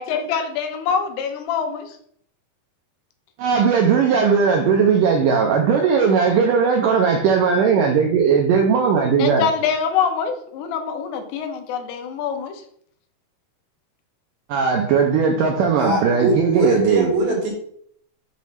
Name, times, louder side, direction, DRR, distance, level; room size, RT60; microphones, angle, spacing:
voice 1, 0.0-2.0 9.2-12.6, left 6 dB, 90° left, 5 dB, 3.0 m, -24 dB
voice 2, 3.4-9.5 14.5-17.1, right 6 dB, 85° right, 2 dB, 1.9 m, -18 dB
voice 3, 15.8-17.5, right 1 dB, 55° right, -3 dB, 2.9 m, -22 dB
7.1 x 3.1 x 5.7 m, 0.65 s
omnidirectional pair, 4.6 m